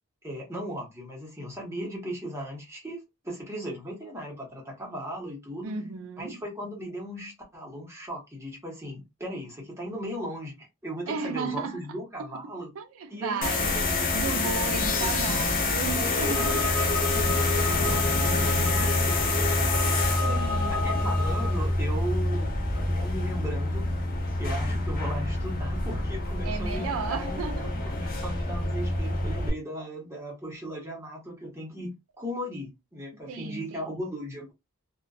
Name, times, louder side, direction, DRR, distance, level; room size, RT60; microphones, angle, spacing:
voice 1, 0.2-5.8 6.2-12.7 13.1-15.1 15.9-19.9 20.7-23.9 24.4-27.5 27.9-34.5, equal, 15° right, 0.9 m, -37 dB
voice 2, 5.6-6.4 11.1-11.8 12.2-16.8 19.6-19.8 20.2-21.1 26.4-27.8 28.2-28.3 33.3-33.9, right 5 dB, 85° right, 0.4 m, -35 dB
sound 1, 13.4-29.5, left 2 dB, 45° left, 0.6 m, -27 dB
sound 2, 14.8-16.1, left 8 dB, 85° left, 0.6 m, -37 dB
sound 3, 16.0-21.7, left 2 dB, 50° right, 0.7 m, -32 dB
2.5 x 2.2 x 2.3 m
head